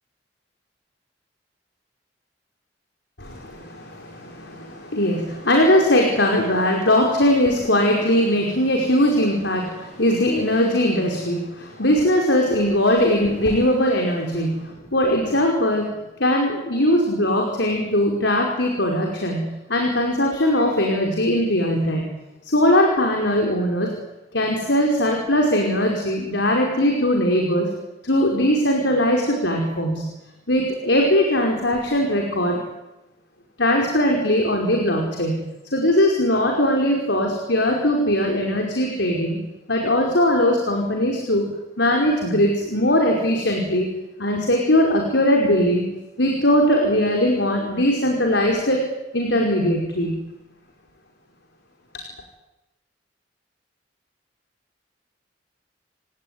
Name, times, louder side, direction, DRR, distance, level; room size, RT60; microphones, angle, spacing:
voice 1, 3.2-15.9 16.2-22.0 22.4-23.9 24.3-27.7 28.0-30.0 30.5-32.6 33.6-35.4 35.7-39.4 39.7-41.5 41.8-43.9 44.2-45.9 46.2-48.8 49.1-50.2, left 1 dB, 75° left, 1 dB, 5.3 m, -20 dB
29.5 x 18.0 x 9.7 m, 0.97 s
head